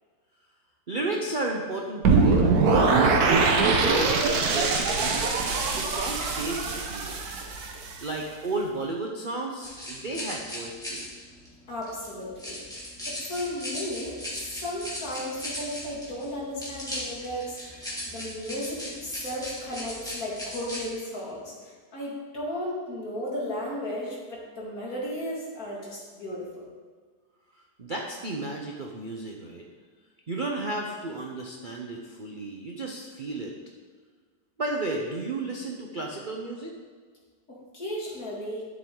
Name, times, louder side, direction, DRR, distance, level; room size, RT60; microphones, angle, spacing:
voice 1, 0.9-4.7 5.0-5.2 5.7-7.1 8.0-11.1 27.5-29.6 30.3-33.5 34.6-36.7, right 2 dB, 45° right, 0 dB, 0.6 m, -33 dB
sound 1, 2.0-8.1, right 4 dB, 60° right, 1.4 m, -23 dB
sound 2, 9.6-20.9, left 1 dB, ahead, 2.4 m, -38 dB
voice 2, 11.7-12.6 13.1-26.7 37.5-38.7, left 1 dB, 55° left, -5 dB, 2.7 m, -35 dB
11.5 x 7.3 x 3.8 m, 1.5 s
omnidirectional pair, 1.9 m